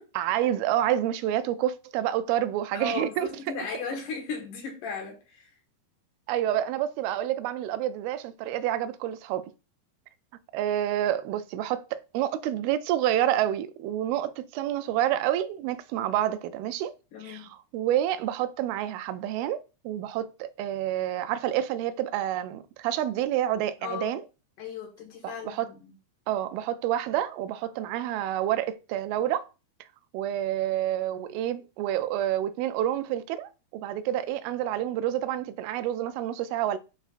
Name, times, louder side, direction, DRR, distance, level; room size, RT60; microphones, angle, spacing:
voice 1, 0.2-3.3 6.3-9.5 10.5-16.9 17.2-24.2 25.4-25.7 26.3-29.5 30.1-36.8, right 12 dB, 85° right, 2.4 m, -28 dB
voice 2, 2.7-5.5 17.1-17.5 23.8-24.2 24.6-25.9, left 4 dB, 60° left, 2.9 m, -36 dB
10.5 x 4.5 x 2.5 m
omnidirectional pair, 4.4 m